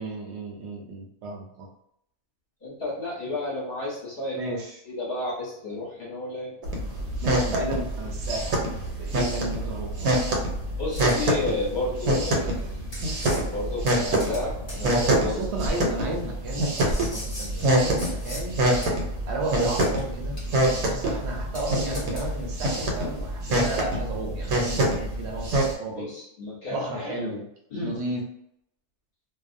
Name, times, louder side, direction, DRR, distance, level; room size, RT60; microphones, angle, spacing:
voice 1, 0.0-1.7 4.3-4.7 7.2-8.6 9.0-10.2 15.2-18.6 19.3-20.4 20.7-26.1 26.7-27.4 27.8-28.2, right 2 dB, 60° right, -1 dB, 0.8 m, -33 dB
voice 2, 2.6-4.4 4.8-6.5 8.3-8.5 10.8-12.8 13.2-15.5 21.6-21.7 22.7-22.8 25.9-28.0, left 2 dB, 45° left, -6 dB, 0.9 m, -32 dB
sound 1, 6.6-25.7, right 1 dB, 85° right, 1.1 m, -26 dB
sound 2, 10.9-11.2 12.3-12.4 12.9-13.4 13.9-14.4 14.7-14.8 15.6-15.7 16.8-18.5 18.8-18.9 19.8-20.0 20.4-20.8 21.0-21.1 21.5-21.6 21.9-22.3, left 1 dB, 30° left, 0.5 m, -40 dB
2.5 x 2.0 x 2.5 m, 0.75 s
omnidirectional pair, 1.5 m